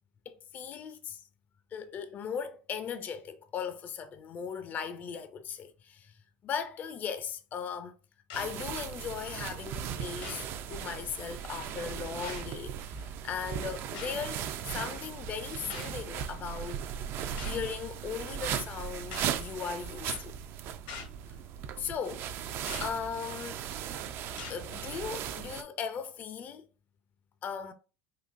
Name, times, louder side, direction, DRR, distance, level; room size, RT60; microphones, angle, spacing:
voice 1, 0.3-1.2 1.7-6.2 6.4-7.9 8.3-16.8 17.4-20.4 21.8-22.3 22.8-23.6 24.5-26.7 27.4-27.7, left 7 dB, 35° left, 0.4 m, -38 dB
sound 1, 8.3-8.5 9.5-9.6 10.2-10.5 11.4-11.5 12.2-12.4 13.9-14.2 15.7-16.0 17.4-17.6 19.1-19.4 20.1-20.3 20.9-21.2 22.7-22.9 23.6-23.9 24.4-24.6 25.3-25.4, left 5 dB, 85° left, 1.0 m, -43 dB
sound 2, 8.3-25.6, right 9 dB, 50° right, 0.4 m, -38 dB
3.9 x 2.6 x 2.5 m
supercardioid pair, 115°, 5 cm